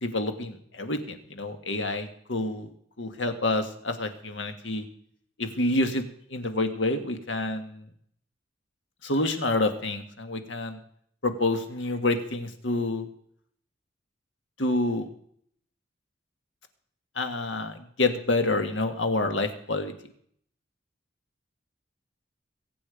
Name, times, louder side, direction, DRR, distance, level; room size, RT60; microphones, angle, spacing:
voice 1, 0.0-2.7 3.0-4.9 5.4-7.9 9.0-10.8 11.2-13.1 14.6-15.1 17.2-19.9, left 2 dB, 80° left, 7 dB, 1.8 m, -28 dB
22.5 x 8.7 x 5.1 m, 0.66 s
head